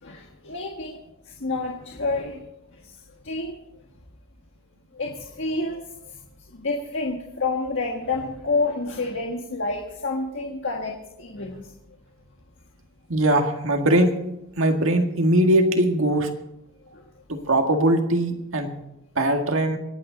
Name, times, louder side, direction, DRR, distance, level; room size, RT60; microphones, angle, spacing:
voice 1, 0.0-1.0 1.2-2.4 2.7-3.0 3.2-3.5 4.9-6.2 6.5-11.7 16.8-17.0, left 3 dB, 65° left, 0 dB, 1.7 m, -29 dB
voice 2, 13.1-14.1 14.6-16.3 17.3-18.7 19.2-19.8, right 1 dB, 75° right, 4 dB, 1.9 m, -20 dB
26.0 x 9.1 x 4.0 m, 0.85 s
head